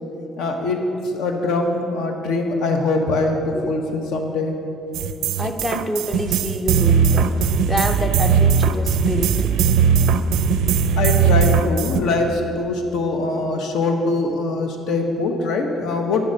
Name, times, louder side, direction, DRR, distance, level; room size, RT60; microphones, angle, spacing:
voice 1, 0.4-0.8 1.1-4.6 11.0-16.2, left 3 dB, 75° left, 3 dB, 1.3 m, -22 dB
sound 1, 4.9-12.0, right 7 dB, 75° right, 0.4 m, -18 dB
voice 2, 5.4-9.5, left 1 dB, 10° left, 7 dB, 0.5 m, -27 dB
9.8 x 7.1 x 6.4 m, 2.9 s
cardioid pair, 170°, 0 cm